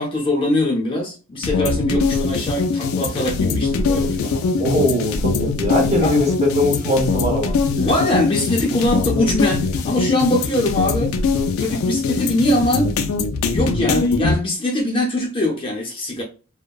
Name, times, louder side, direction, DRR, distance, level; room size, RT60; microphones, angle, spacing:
voice 1, 0.0-4.4 6.0-6.1 7.7-11.1 11.6-12.9 13.4-16.2, left 1 dB, 25° left, 0.6 m, -22 dB
sound 1, 1.4-14.3, left 4 dB, 80° left, 0.3 m, -22 dB
voice 2, 4.6-7.5, left 1 dB, 30° right, 0.7 m, -20 dB
2.6 x 2.1 x 2.3 m
head